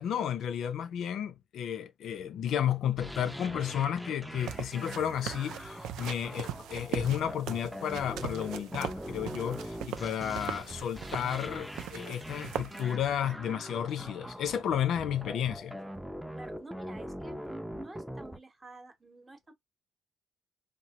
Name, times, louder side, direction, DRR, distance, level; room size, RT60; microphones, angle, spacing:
voice 1, 0.0-15.8, left 9 dB, 70° left, 0.4 m, -32 dB
sound 1, 3.0-18.4, equal, ahead, 0.4 m, -42 dB
sound 2, 4.4-12.9, right 11 dB, 90° right, 0.3 m, -41 dB
voice 2, 16.3-19.5, right 2 dB, 25° right, 0.8 m, -49 dB
2.9 x 2.2 x 2.8 m
cardioid pair, 90°, 0 cm